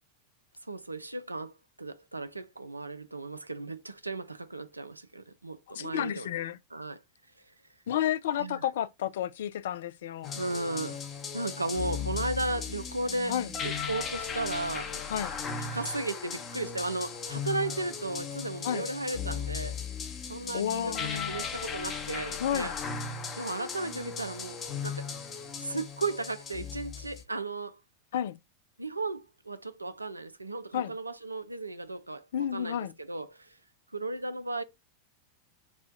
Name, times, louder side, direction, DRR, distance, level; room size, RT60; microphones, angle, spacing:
voice 1, 0.7-6.3 6.7-7.0 8.4-8.6 10.3-11.0 11.3-13.4 13.6-14.9 15.6-19.8 20.3-20.9 21.3-22.7 23.4-25.1 25.6-27.8 28.8-33.6 33.9-34.6, right 2 dB, 85° right, 0.4 m, -35 dB
voice 2, 5.7-6.6 7.9-10.3 12.0-12.2 13.3-13.5 15.1-15.3 18.6-18.9 20.5-21.3 22.4-22.7 28.1-28.4 30.7-30.9 32.3-32.9, left 10 dB, 60° left, 0.3 m, -31 dB
sound 1, 10.2-27.2, left 6 dB, 25° left, 0.7 m, -37 dB
4.2 x 2.2 x 2.5 m
figure-of-eight pair, 90°, 0 cm